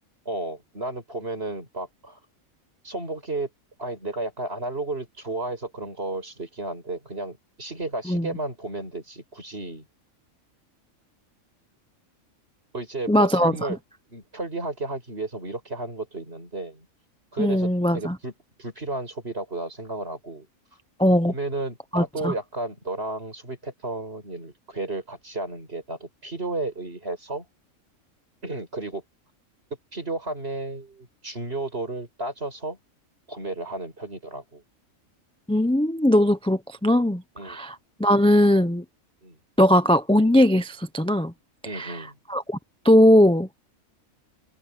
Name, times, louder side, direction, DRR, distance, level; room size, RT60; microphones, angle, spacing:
voice 1, 0.3-2.2 2.8-3.5 3.8-9.8 12.7-13.8 14.1-16.9 17.3-18.3 18.6-20.5 21.3-27.5 28.4-29.0 29.9-32.8 33.3-34.6 37.4-37.6 39.2-39.4 41.6-42.2, right 2 dB, 45° right, 6.1 m, -33 dB
voice 2, 13.1-13.7 17.4-18.2 21.0-21.3 21.9-22.3 35.5-38.8 39.6-41.3 41.7-42.0 42.3-42.6 42.8-43.5, left 1 dB, 5° left, 0.7 m, -20 dB
omnidirectional pair, 1.4 m